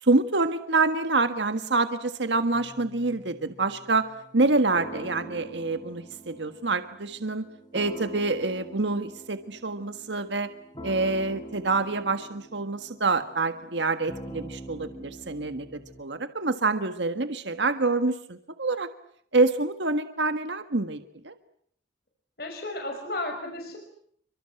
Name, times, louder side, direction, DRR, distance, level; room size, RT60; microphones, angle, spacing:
voice 1, 0.0-4.1 4.3-7.5 7.7-10.5 10.8-18.9 19.3-21.3, right 3 dB, 85° right, 9 dB, 1.6 m, -26 dB
sound 1, 2.5-16.0, right 2 dB, 25° left, 3.5 m, -44 dB
voice 2, 22.4-23.8, left 2 dB, 55° left, 2 dB, 5.7 m, -33 dB
29.5 x 25.0 x 7.9 m, 0.66 s
head